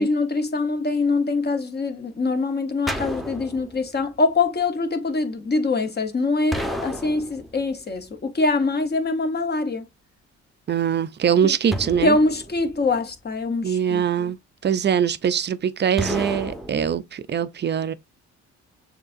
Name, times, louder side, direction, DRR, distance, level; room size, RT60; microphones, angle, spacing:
voice 1, 0.0-9.9 11.4-11.5 12.0-14.3, left 3 dB, 35° left, 1.1 m, -24 dB
sound 1, 2.9-4.0 6.5-7.8 11.7-13.1 16.0-17.0, equal, ahead, 0.9 m, -31 dB
voice 2, 10.7-12.2 13.6-14.4 14.6-17.9, right 8 dB, 35° right, 0.5 m, -22 dB
6.5 x 2.8 x 2.5 m
cardioid pair, 90°, 30 cm